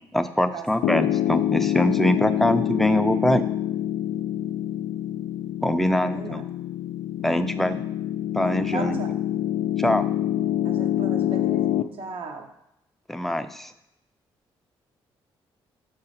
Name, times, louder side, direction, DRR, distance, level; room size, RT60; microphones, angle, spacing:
voice 1, 0.1-3.4 5.6-6.4 7.2-7.9 8.3-9.0 9.8-10.1 13.1-13.7, left 1 dB, 5° left, 9 dB, 0.5 m, -23 dB
Piano, 0.8-11.8, left 12 dB, 80° left, 0.4 m, -26 dB
voice 2, 6.0-6.4 8.4-9.1 10.6-12.5, right 3 dB, 65° right, 3 dB, 1.0 m, -36 dB
6.4 x 3.8 x 4.2 m, 0.85 s
supercardioid pair, 65°, 10 cm